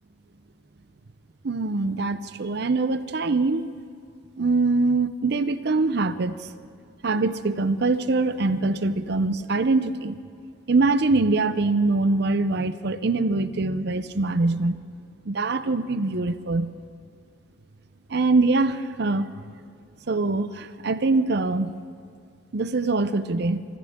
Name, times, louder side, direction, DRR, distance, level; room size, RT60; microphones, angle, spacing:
voice 1, 1.4-3.7 4.4-6.5 7.0-10.2 10.7-14.8 15.3-16.7 18.1-19.3 20.1-21.7 22.5-23.6, right 3 dB, 60° right, 13 dB, 0.6 m, -23 dB
25.5 x 14.5 x 3.7 m, 2.4 s
head